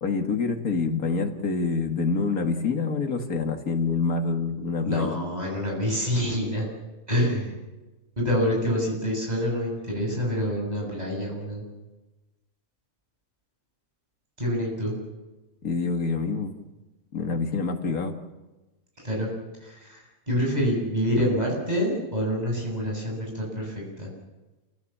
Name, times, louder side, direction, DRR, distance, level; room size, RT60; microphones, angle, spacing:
voice 1, 0.0-5.2 15.6-16.6 17.1-18.1, left 4 dB, 70° left, 4 dB, 2.5 m, -26 dB
voice 2, 4.8-6.7 7.1-7.5 8.2-11.7 14.4-15.0 19.0-19.3 19.6-24.1, equal, 25° right, -2 dB, 8.0 m, -27 dB
29.0 x 17.5 x 7.4 m, 1.1 s
omnidirectional pair, 1.5 m